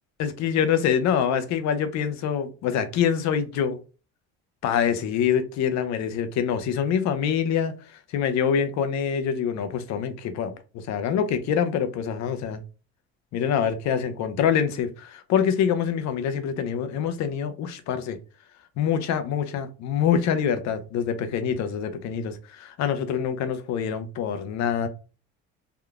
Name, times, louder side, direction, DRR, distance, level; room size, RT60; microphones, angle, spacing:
voice 1, 0.2-3.8 4.6-12.6 13.3-18.2 18.8-24.9, left 8 dB, 65° left, 0.6 m, -25 dB
3.6 x 2.2 x 2.4 m
cardioid pair, 95°, 30 cm